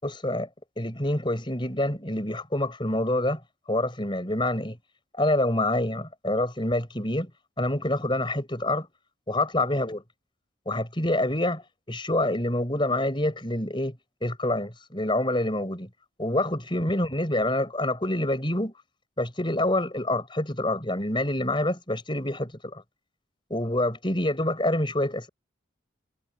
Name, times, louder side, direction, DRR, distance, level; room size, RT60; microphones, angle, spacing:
voice 1, 0.0-0.5 0.8-3.4 3.7-4.8 5.2-7.3 7.6-8.9 9.3-10.0 10.7-11.6 11.9-14.0 14.2-15.9 16.2-18.7 19.2-22.8 23.5-25.3, left 1 dB, 25° left, 4.7 m, -26 dB
head